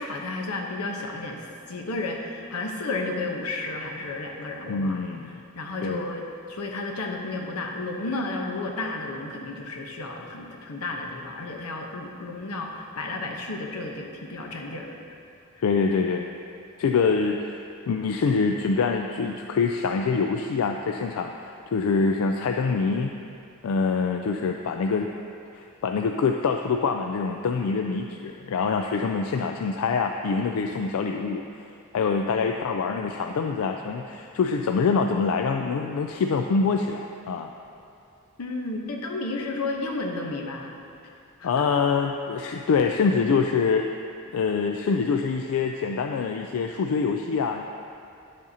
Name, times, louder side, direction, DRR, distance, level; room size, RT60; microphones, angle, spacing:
voice 1, 0.0-1.4 1.7-5.0 5.5-6.2 6.5-14.9 38.4-40.8 41.4-41.7, left 2 dB, 90° left, 1 dB, 0.9 m, -32 dB
voice 2, 4.7-5.4 5.8-6.1 15.6-16.3 16.8-23.1 23.6-25.1 25.5-31.4 31.9-37.5 41.4-44.0 44.3-47.6, left 5 dB, 70° left, 4 dB, 0.3 m, -25 dB
10.5 x 7.4 x 2.8 m, 2.5 s
head